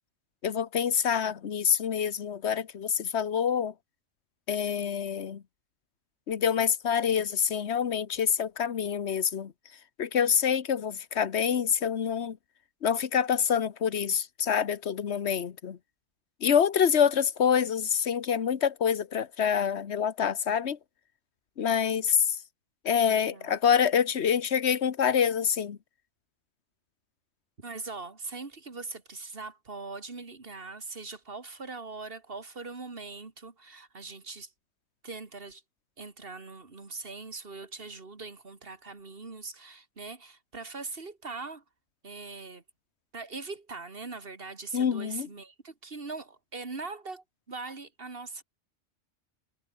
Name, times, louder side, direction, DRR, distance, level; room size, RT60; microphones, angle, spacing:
voice 1, 0.4-3.7 4.5-5.4 6.3-9.5 10.0-12.4 12.8-15.8 16.4-20.8 21.6-22.4 22.8-25.8 44.7-45.3, left 7 dB, 65° left, 1.4 m, -26 dB
voice 2, 23.1-23.6 27.6-34.5 35.0-35.6 36.0-41.6 42.0-42.6 43.1-48.4, right 3 dB, 50° right, 2.4 m, -41 dB
omnidirectional pair, 1.3 m